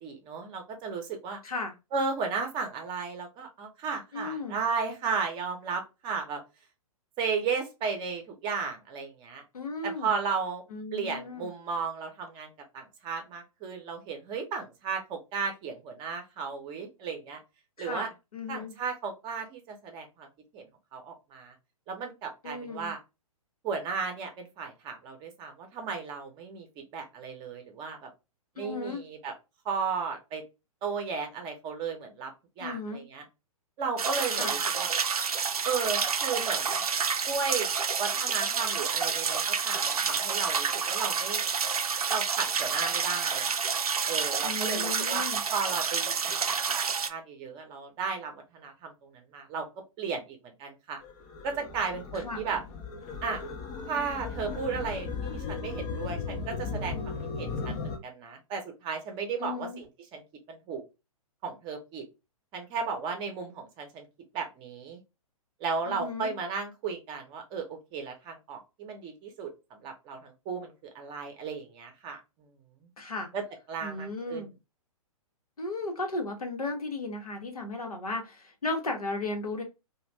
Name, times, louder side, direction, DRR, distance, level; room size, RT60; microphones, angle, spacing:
voice 1, 0.0-1.4 1.9-6.4 7.2-9.4 9.8-10.6 10.9-17.4 17.8-18.1 18.5-20.3 20.5-21.5 21.9-23.0 23.6-26.7 26.9-28.1 28.6-29.3 29.6-30.4 30.8-32.3 32.6-33.2 33.8-34.9 35.6-36.8 37.3-37.7 38.0-41.4 42.1-43.5 44.1-46.6 47.1-49.7 50.0-51.0 51.4-52.6 53.2-53.4 53.9-59.8 60.1-60.2 60.5-60.8 61.4-62.0 62.5-64.1 64.3-65.0 65.6-72.5 72.8-72.9 73.3-73.4 73.7-74.5, right 5 dB, 25° right, 5 dB, 0.7 m, -34 dB
voice 2, 4.1-4.6 9.5-10.1 10.7-11.5 17.8-18.7 22.4-22.9 28.6-29.0 32.6-33.0 34.3-34.5 44.4-45.4 52.1-52.4 59.4-59.8 65.9-66.3 73.0-73.3 73.8-74.5 75.6-79.6, left 3 dB, 80° left, 3 dB, 0.9 m, -35 dB
sound 1, 34.0-47.1, right 6 dB, 80° right, 0.4 m, -29 dB
sound 2, 51.0-58.0, left 4 dB, 30° left, 0.5 m, -36 dB
2.4 x 2.3 x 3.1 m, 0.26 s
figure-of-eight pair, 120°, 19 cm